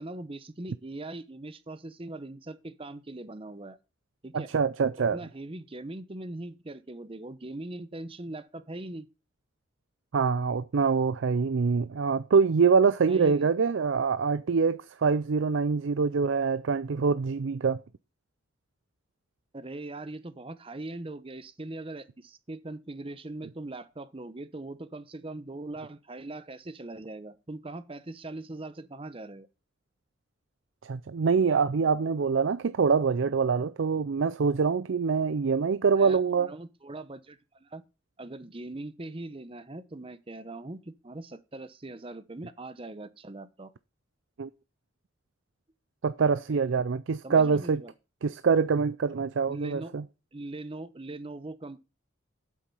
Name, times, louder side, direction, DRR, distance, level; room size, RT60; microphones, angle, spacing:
voice 1, 0.0-3.8 4.2-4.5 5.0-9.1 13.1-13.5 19.5-29.5 35.9-37.8 38.2-43.7 47.2-47.9 49.5-49.9 50.3-51.8, right 2 dB, 30° right, 0.7 m, -41 dB
voice 2, 4.3-5.2 10.1-17.8 30.8-36.5 44.4-44.5 46.0-47.8 48.2-50.0, right 5 dB, 70° right, 0.5 m, -25 dB
8.4 x 7.5 x 5.4 m
head